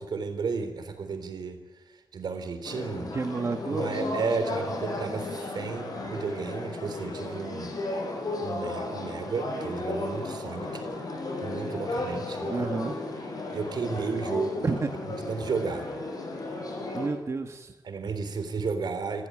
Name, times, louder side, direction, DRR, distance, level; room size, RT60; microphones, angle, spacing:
voice 1, 0.0-1.6 2.1-3.1 3.7-7.7 8.4-10.9 11.4-12.7 13.5-14.8 15.1-15.9 17.8-19.3, right 4 dB, 80° right, 8 dB, 3.6 m, -33 dB
sound 1, 2.6-17.1, left 2 dB, 60° left, 6.6 m, -34 dB
voice 2, 3.1-3.9 12.5-13.0 14.6-14.9 16.9-17.7, right 4 dB, 40° right, 6 dB, 1.3 m, -30 dB
26.0 x 16.0 x 9.1 m, 1.1 s
wide cardioid pair, 115°, 7 cm